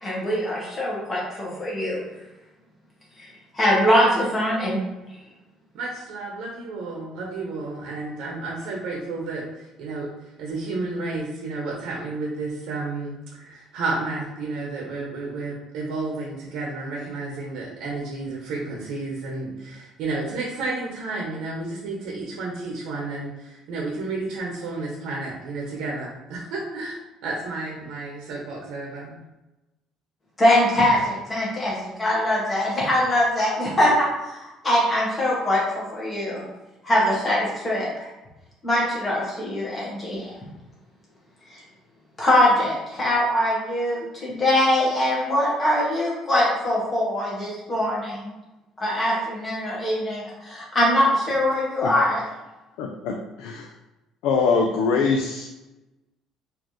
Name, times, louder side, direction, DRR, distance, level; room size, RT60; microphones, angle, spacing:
voice 1, 0.0-2.0 3.2-3.3 3.5-4.8 30.4-36.5 36.8-38.1 38.6-40.4 41.5-41.6 42.2-48.3 48.8-52.2, left 1 dB, 15° left, -5 dB, 1.2 m, -22 dB
voice 2, 5.7-29.2, right 3 dB, 65° right, -2 dB, 0.9 m, -31 dB
voice 3, 52.8-53.7 54.2-55.5, left 4 dB, 85° left, 2 dB, 0.4 m, -23 dB
4.3 x 2.8 x 3.1 m, 1.0 s
cardioid pair, 170°, 0 cm